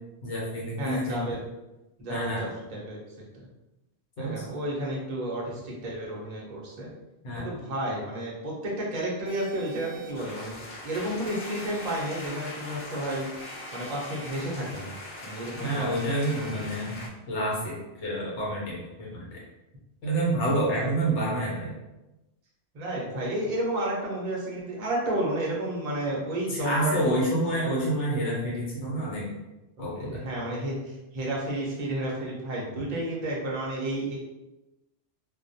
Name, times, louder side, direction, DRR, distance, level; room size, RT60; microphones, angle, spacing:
voice 1, 0.2-1.3 2.1-2.5 4.2-4.4 7.2-7.5 15.6-19.4 20.0-21.7 26.5-29.3 29.8-30.2, right 1 dB, 85° left, -4 dB, 1.0 m, -28 dB
voice 2, 0.8-1.4 2.0-3.0 4.2-6.9 7.3-13.3 13.7-14.9 15.2-15.9 16.3-16.7 20.7-20.9 22.7-27.3 29.8-34.2, right 1 dB, 45° right, -4 dB, 0.7 m, -32 dB
sound 1, 9.3-10.1 11.3-12.3 13.4-14.3 15.5-16.7, right 3 dB, 75° right, 0.8 m, -48 dB
sound 2, 10.1-17.1, left 2 dB, 65° left, 0.8 m, -41 dB
2.3 x 2.1 x 2.6 m, 1.0 s
omnidirectional pair, 1.2 m